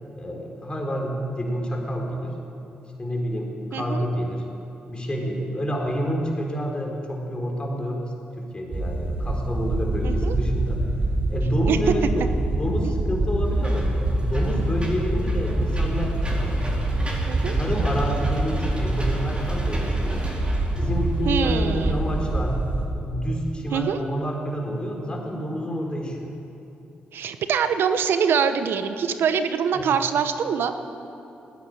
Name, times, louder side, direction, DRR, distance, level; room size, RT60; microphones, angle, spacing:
voice 1, 0.2-2.4 3.0-4.4 4.9-10.8 11.3-12.0 12.4-13.9 14.2-16.6 17.5-20.2 20.8-22.6 22.9-26.3 29.7-29.9, equal, 25° left, 0 dB, 4.1 m, -28 dB
voice 2, 3.7-4.0 10.0-10.4 11.7-11.8 12.8-12.9 17.3-17.6 21.3-22.0 23.7-24.0 27.1-30.7, right 7 dB, 75° right, 10 dB, 0.9 m, -24 dB
sound 1, 8.7-22.8, right 1 dB, 50° right, 2.5 m, -25 dB
Engine / Mechanisms, 13.4-22.4, right 1 dB, 30° right, 4.6 m, -36 dB
15.5 x 10.5 x 9.1 m, 2.9 s
supercardioid pair, 60°, 4 cm